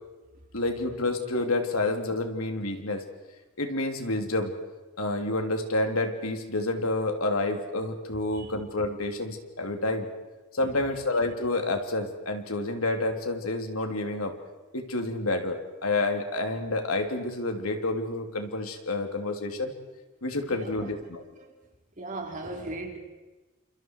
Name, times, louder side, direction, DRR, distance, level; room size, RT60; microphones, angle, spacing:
voice 1, 0.5-3.0 3.6-4.5 5.0-10.1 10.5-14.4 14.7-19.7 20.2-21.2, left 2 dB, 90° left, 4 dB, 3.2 m, -29 dB
voice 2, 20.5-20.9 21.4-21.5 22.0-23.0, right 2 dB, 35° right, 1 dB, 4.2 m, -38 dB
30.0 x 28.0 x 4.8 m, 1.2 s
head